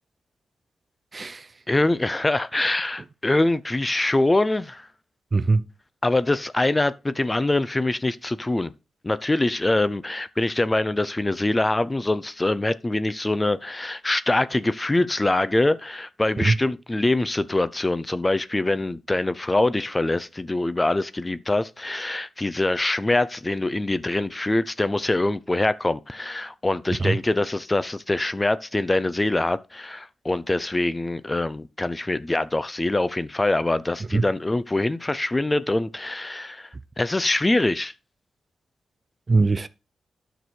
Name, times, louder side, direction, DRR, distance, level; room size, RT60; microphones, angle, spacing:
voice 1, 1.1-1.5 5.3-5.7 16.4-16.6 27.0-27.2 34.1-34.3 39.3-39.7, right 3 dB, 35° right, 0.6 m, -21 dB
voice 2, 1.7-4.9 6.0-8.7 9.0-36.7 37.0-37.9, left 2 dB, 20° left, 0.6 m, -24 dB
9.8 x 6.1 x 4.6 m
cardioid pair, 85°, 0 cm